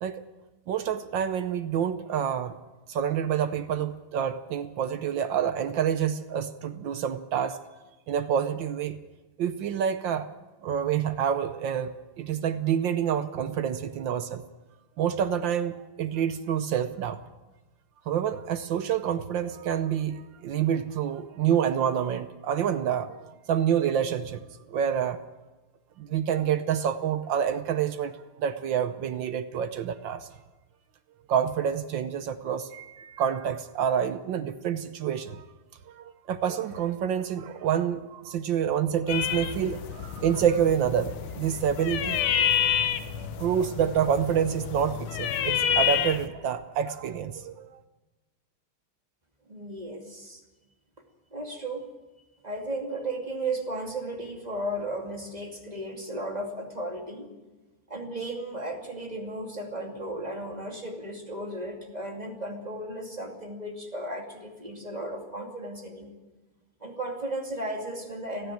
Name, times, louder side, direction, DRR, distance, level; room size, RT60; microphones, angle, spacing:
voice 1, 0.7-2.6 2.9-7.6 8.1-9.0 9.4-10.3 10.6-11.9 12.2-14.4 15.0-17.2 18.1-24.4 24.7-25.2 26.0-30.3 31.3-35.4 35.9-42.2 43.4-47.8, right 8 dB, 65° right, 11 dB, 1.4 m, -27 dB
sound 1, 39.1-46.3, left 9 dB, 85° left, 1.8 m, -29 dB
voice 2, 49.5-50.4 51.3-51.9 52.4-57.3 57.9-66.1 66.8-68.5, right 1 dB, 20° right, 1 dB, 2.6 m, -35 dB
30.0 x 10.0 x 9.1 m, 1.2 s
omnidirectional pair, 2.3 m